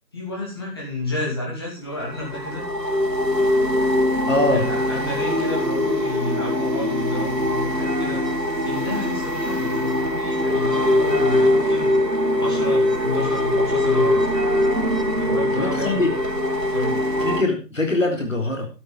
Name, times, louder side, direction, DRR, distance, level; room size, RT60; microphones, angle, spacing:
voice 1, 0.1-2.6 4.5-8.2 8.6-11.9 12.3-14.2 15.1-16.0 16.7-17.0, left 2 dB, 15° left, -4 dB, 3.1 m, -30 dB
sound 1, 2.0-17.4, left 1 dB, 80° right, 3.2 m, -22 dB
voice 2, 4.3-4.6 15.5-16.1 17.2-18.7, left 2 dB, 50° left, 3 dB, 3.8 m, -22 dB
12.5 x 8.0 x 5.4 m, 0.32 s
figure-of-eight pair, 165°, 49 cm